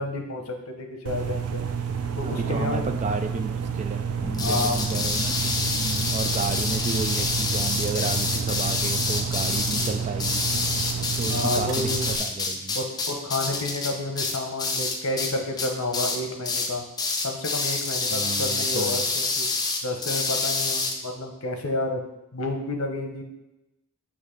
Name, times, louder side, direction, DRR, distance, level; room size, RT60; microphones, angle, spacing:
voice 1, 0.0-1.6 2.1-2.8 4.4-4.8 9.6-10.1 11.3-12.1 12.7-16.8 17.2-19.5 19.8-22.0 22.3-23.2, left 2 dB, 70° left, 3 dB, 0.9 m, -30 dB
sound 1, 1.1-12.2, right 7 dB, 85° right, 0.5 m, -30 dB
voice 2, 2.2-4.1 4.4-10.4 11.1-12.8 18.1-19.1, right 4 dB, 35° right, 8 dB, 0.3 m, -32 dB
sound 2, 4.2-8.3, left 1 dB, 15° right, 1.5 m, -40 dB
sound 3, 4.3-15.3 15.6-16.2 16.4-16.7 17.0-20.9, left 3 dB, 20° left, 0.5 m, -27 dB
6.5 x 3.0 x 5.1 m, 0.93 s
head